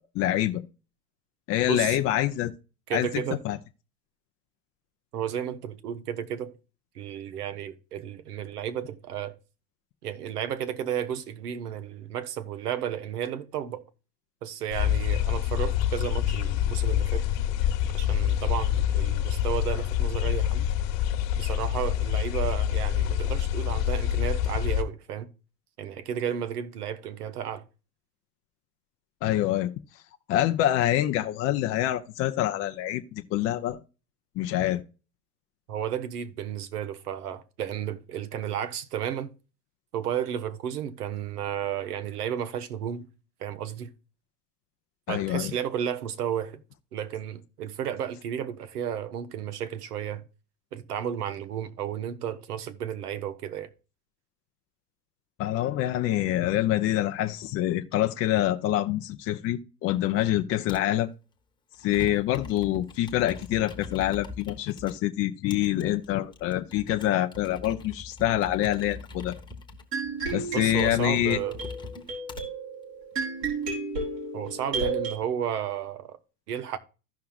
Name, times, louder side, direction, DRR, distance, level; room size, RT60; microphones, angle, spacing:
voice 1, 0.1-0.6 1.5-2.5 2.9-3.6 29.2-29.7 30.3-33.8 34.4-34.8 45.1-45.5 55.4-61.1 61.8-69.4 70.3-71.4, left 13 dB, 30° left, 0.6 m, -26 dB
voice 2, 2.9-3.4 5.1-6.5 6.9-9.3 10.0-13.8 14.4-17.3 17.9-20.7 21.3-25.3 25.8-27.6 35.7-39.3 39.9-43.1 43.4-43.9 45.1-46.6 46.9-50.2 50.7-53.7 70.5-71.6 74.3-76.2 76.5-76.8, right 9 dB, 70° right, 1.1 m, -33 dB
sound 1, 14.7-24.8, left 11 dB, 50° left, 1.4 m, -26 dB
Computer keyboard, 60.7-61.0 61.7-64.9 65.5-72.4 73.1-73.7, left 3 dB, 10° left, 1.2 m, -43 dB
sound 2, 69.9-75.2, right 4 dB, 85° right, 4.9 m, -33 dB
15.5 x 5.7 x 2.4 m
hypercardioid pair, 100°, 48 cm